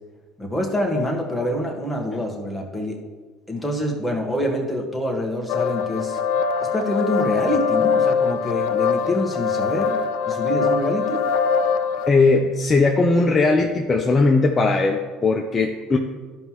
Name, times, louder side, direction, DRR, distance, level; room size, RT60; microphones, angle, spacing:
voice 1, 0.4-3.0 3.5-6.2 6.6-11.2, left 1 dB, 5° left, 0 dB, 1.6 m, -26 dB
sound 1, 5.5-12.1, left 6 dB, 70° left, 0.4 m, -22 dB
voice 2, 12.1-16.0, left 3 dB, 30° left, 2 dB, 0.7 m, -18 dB
12.5 x 5.4 x 3.1 m, 1.4 s
supercardioid pair, 80°, 0 cm